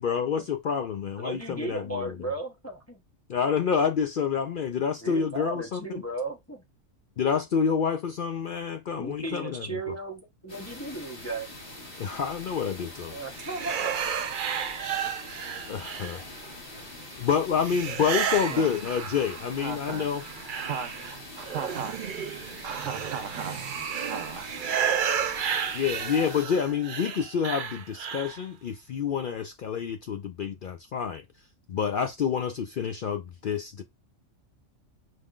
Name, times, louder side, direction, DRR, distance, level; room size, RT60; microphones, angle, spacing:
voice 1, 0.0-2.1 3.3-5.8 7.2-9.6 12.0-13.2 15.7-16.2 16.8-20.2 25.7-31.2 31.7-33.8, left 7 dB, 70° left, 0.5 m, -28 dB
voice 2, 1.2-3.0 5.0-6.6 8.9-11.5 13.0-13.9, right 2 dB, 15° left, 0.7 m, -35 dB
sound 1, 10.5-26.4, left 1 dB, 45° left, 1.9 m, -44 dB
sound 2, 13.3-16.5 17.6-19.6 20.0-28.4, right 8 dB, 55° right, 0.5 m, -32 dB
voice 3, 19.6-20.2 20.6-22.2 22.6-24.5, right 7 dB, 75° right, 1.1 m, -37 dB
5.0 x 3.7 x 2.4 m
omnidirectional pair, 1.4 m